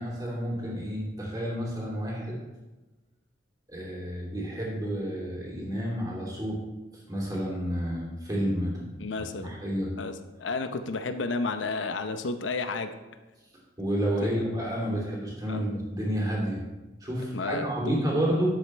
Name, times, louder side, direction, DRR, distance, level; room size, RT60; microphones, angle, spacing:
voice 1, 0.0-2.4 3.7-6.6 7.1-9.9 13.8-16.6 17.0-18.6, equal, 20° right, -4 dB, 2.8 m, -30 dB
voice 2, 9.0-9.6 10.0-10.1 10.4-12.9 14.2-14.4 15.5-15.7 17.3-18.1, left 3 dB, 85° left, 9 dB, 0.7 m, -32 dB
11.5 x 7.9 x 3.3 m, 1.1 s
head